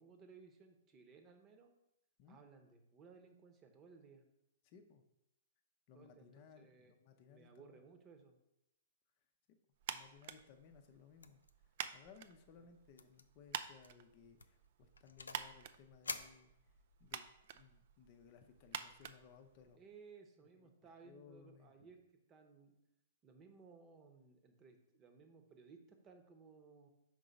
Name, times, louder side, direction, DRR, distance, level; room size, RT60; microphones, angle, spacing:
voice 1, 0.0-1.7 2.3-4.2 5.9-6.9 7.3-8.3 12.6-12.7 19.8-22.7 23.2-26.9, right 5 dB, 25° right, 5 dB, 0.9 m, -61 dB
voice 2, 4.6-5.0 5.9-7.8 9.5-9.6 9.9-11.4 11.9-17.2 17.5-19.8 20.6-20.7 21.0-21.9, left 6 dB, 45° left, 6 dB, 0.7 m, -62 dB
sound 1, 9.8-20.0, right 10 dB, 55° right, 0.4 m, -50 dB
sound 2, 11.2-11.5 11.8-12.1 12.3-12.4 13.0-13.2 13.6-13.9 14.4-15.5 16.0-17.0, left 4 dB, 85° left, 0.4 m, -48 dB
5.3 x 3.8 x 5.1 m, 0.86 s
hypercardioid pair, 120°, 0 cm